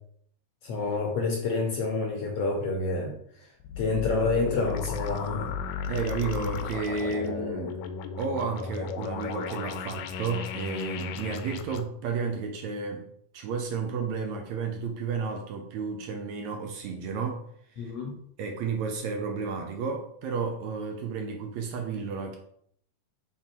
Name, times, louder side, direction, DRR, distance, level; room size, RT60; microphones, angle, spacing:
voice 1, 0.6-3.1 3.8-5.5 7.0-7.1 17.8-18.1, left 3 dB, 65° left, 0 dB, 1.6 m, -28 dB
sound 1, 3.6-11.8, left 6 dB, 90° left, 2.1 m, -34 dB
voice 2, 5.9-7.8 8.2-13.0 13.3-17.4 17.8-17.9 18.4-22.4, right 5 dB, 75° right, 3 dB, 1.8 m, -32 dB
5.8 x 3.8 x 4.4 m, 0.66 s
omnidirectional pair, 3.6 m